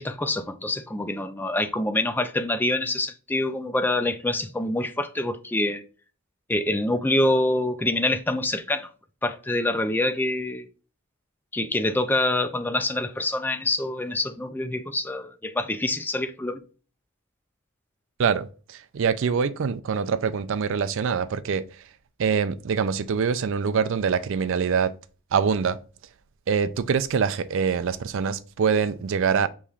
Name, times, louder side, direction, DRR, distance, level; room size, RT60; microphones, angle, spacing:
voice 1, 0.0-5.8 6.5-8.9 9.2-10.7 11.5-16.6, left 1 dB, 10° left, 0.4 m, -26 dB
voice 2, 18.2-21.6 22.2-24.9 25.3-25.8 26.5-29.5, right 6 dB, 60° right, 0.4 m, -24 dB
6.7 x 3.1 x 2.4 m
head